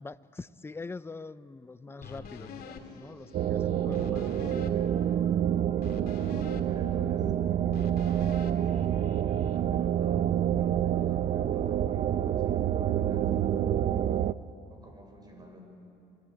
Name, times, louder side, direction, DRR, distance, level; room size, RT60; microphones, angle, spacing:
voice 1, 0.0-4.8, left 3 dB, 15° left, 15 dB, 0.6 m, -44 dB
sound 1, 1.9-6.9, right 2 dB, 70° right, 5.2 m, -54 dB
sound 2, 2.0-9.6, left 6 dB, 65° left, 2.7 m, -47 dB
sound 3, 3.3-14.3, right 10 dB, 50° right, 0.7 m, -27 dB
voice 2, 6.7-13.6 14.7-15.6, equal, 25° right, 3 dB, 6.2 m, -51 dB
28.0 x 21.5 x 9.1 m, 2.7 s
cardioid pair, 110°, 17 cm